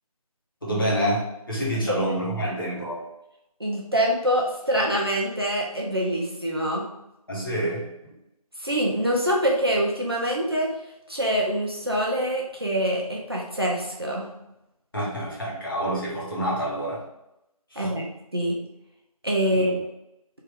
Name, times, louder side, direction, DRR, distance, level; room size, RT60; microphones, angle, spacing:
voice 1, 0.6-3.0 7.3-7.9 14.9-17.0 17.7-17.9 19.5-19.8, right 1 dB, 35° left, -6 dB, 1.1 m, -27 dB
voice 2, 3.6-6.8 8.6-10.7 11.1-14.3 17.8-18.0 18.3-18.6 19.2-19.7, equal, 40° right, -2 dB, 0.6 m, -25 dB
3.4 x 2.4 x 3.4 m, 0.87 s
figure-of-eight pair, 170°, 19 cm